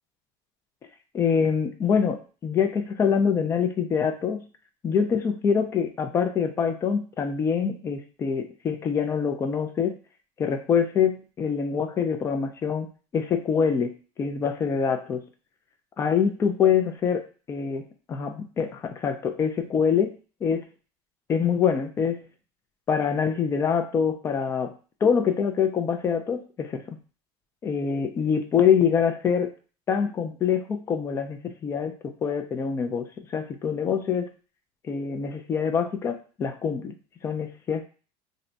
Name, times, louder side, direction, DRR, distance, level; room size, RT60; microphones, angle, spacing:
voice 1, 1.1-4.5 4.8-10.0 10.4-15.3 16.0-17.2 17.5-20.1 20.4-20.7 21.3-22.2 22.9-24.7 25.0-27.0 27.6-29.5 29.9-34.3 34.9-36.9 37.2-37.8, left 7 dB, 20° left, 7 dB, 0.3 m, -25 dB
2.6 x 2.1 x 3.8 m, 0.37 s
cardioid pair, 165°, 12 cm